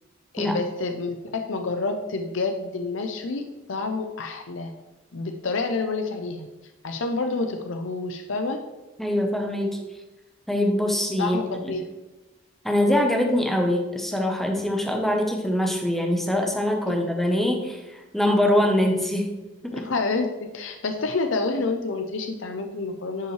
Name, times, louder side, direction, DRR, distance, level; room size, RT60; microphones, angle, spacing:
voice 1, 0.3-3.4 3.7-4.7 5.1-6.5 6.8-8.6 11.2-11.8 19.7-23.3, left 3 dB, 70° left, 5 dB, 0.6 m, -28 dB
voice 2, 9.0-9.8 10.5-11.7 12.6-19.3 19.6-19.8, left 1 dB, ahead, 1 dB, 0.9 m, -23 dB
11.0 x 5.5 x 3.2 m, 1.1 s
head